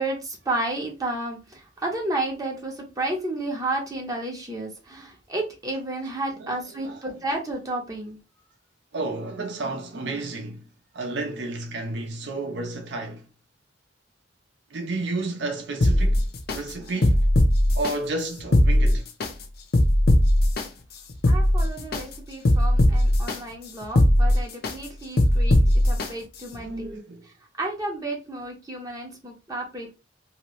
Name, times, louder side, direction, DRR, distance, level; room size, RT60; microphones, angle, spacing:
voice 1, 0.0-8.2 21.2-25.6 25.8-27.0 27.6-29.9, right 2 dB, 20° right, 0.7 m, -31 dB
voice 2, 6.3-7.0 8.9-10.6 10.9-13.3 14.7-17.3 17.7-19.1 23.8-23.9 26.5-27.3, right 2 dB, 70° right, 0.6 m, -32 dB
sound 1, 15.8-16.6 17.0-17.9 18.4-19.3 19.7-20.6 21.1-22.0 22.4-23.4 23.8-24.7 25.2-26.1 26.5-26.6, left 1 dB, 55° left, 0.5 m, -19 dB
2.8 x 2.5 x 3.0 m
head